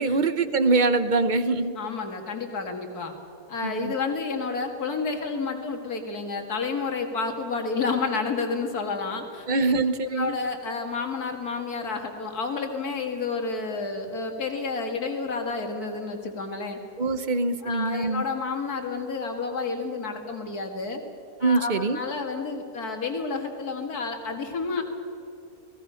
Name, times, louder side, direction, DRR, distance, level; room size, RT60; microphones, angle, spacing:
voice 1, 0.0-1.7 3.6-3.9 9.5-10.3 17.0-18.2 21.4-22.0, right 3 dB, 35° right, 12 dB, 0.8 m, -23 dB
voice 2, 1.8-3.1 3.5-9.7 10.1-16.8 17.6-21.0 21.4-24.8, left 4 dB, 65° left, 4 dB, 2.6 m, -30 dB
29.5 x 19.5 x 5.7 m, 2.9 s
omnidirectional pair, 1.7 m